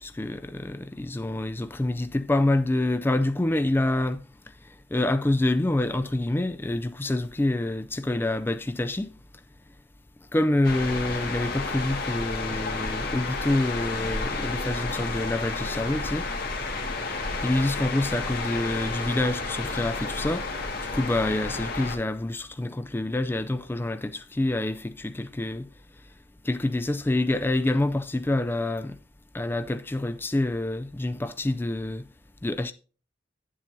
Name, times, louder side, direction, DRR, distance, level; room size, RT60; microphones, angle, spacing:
voice 1, 0.0-4.2 4.9-9.1 10.3-16.3 17.4-20.4 20.9-25.7 26.4-29.0 29.3-32.0 32.4-32.7, left 1 dB, 10° left, 0.3 m, -27 dB
sound 1, 10.6-22.0, left 3 dB, 55° left, 1.8 m, -31 dB
10.0 x 7.4 x 2.7 m
head